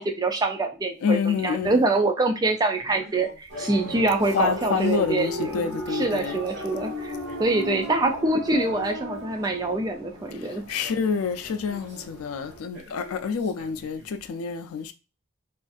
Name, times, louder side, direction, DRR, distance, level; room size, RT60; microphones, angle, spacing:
voice 1, 0.0-10.6, right 2 dB, 20° right, 0.3 m, -25 dB
voice 2, 1.0-1.8 4.3-6.4 10.7-14.9, left 6 dB, 85° left, 0.4 m, -27 dB
Male speech man speaking, 2.8-5.3 6.3-8.0 8.5-9.7 10.6-12.1 12.7-14.2, equal, 35° right, 1.2 m, -47 dB
sound 1, 3.5-12.6, right 1 dB, 75° right, 0.8 m, -36 dB
2.5 x 2.4 x 2.3 m
head